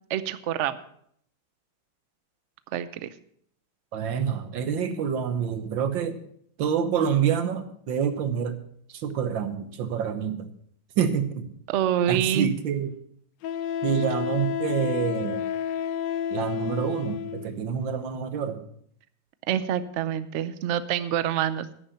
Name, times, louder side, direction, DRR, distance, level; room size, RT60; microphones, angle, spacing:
voice 1, 0.1-0.8 2.7-3.1 11.7-12.5 19.5-21.7, right 10 dB, 90° right, 13 dB, 0.6 m, -26 dB
voice 2, 3.9-6.2 6.6-8.6 8.9-10.5 11.0-11.5 12.1-12.9 13.8-15.4 16.3-18.7, right 7 dB, 70° right, 9 dB, 1.8 m, -27 dB
Wind instrument woodwind instrument, 12.1-12.2 13.4-17.5, left 9 dB, 75° left, 1.2 m, -30 dB
10.5 x 10.0 x 5.5 m, 0.66 s
omnidirectional pair, 2.2 m